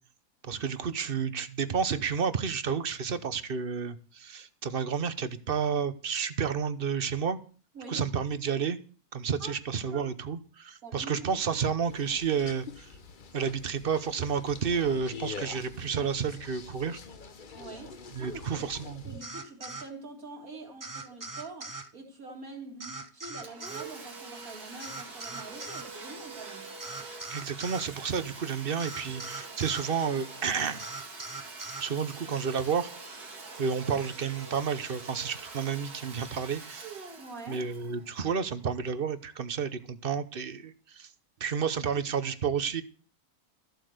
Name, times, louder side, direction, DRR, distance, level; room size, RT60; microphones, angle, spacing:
voice 1, 0.4-7.4 7.9-8.8 9.1-12.9 13.3-17.0 18.1-19.0 27.3-30.8 31.8-32.9 33.6-37.0 37.5-41.1 41.4-42.8, right 6 dB, 45° right, 1.0 m, -31 dB
voice 2, 10.8-11.3 17.5-26.7 37.2-37.7, right 3 dB, 65° right, 2.9 m, -45 dB
sound 1, 11.8-19.2, left 5 dB, 40° left, 1.0 m, -45 dB
sound 2, 19.2-19.9 20.8-21.9 22.8-23.9 24.8-25.9 26.8-27.9 28.8-29.9 30.8-31.9, right 3 dB, 20° right, 0.6 m, -41 dB
Domestic sounds home sounds, 23.4-38.9, right 3 dB, 90° right, 2.7 m, -45 dB
14.0 x 8.0 x 6.6 m
omnidirectional pair, 1.6 m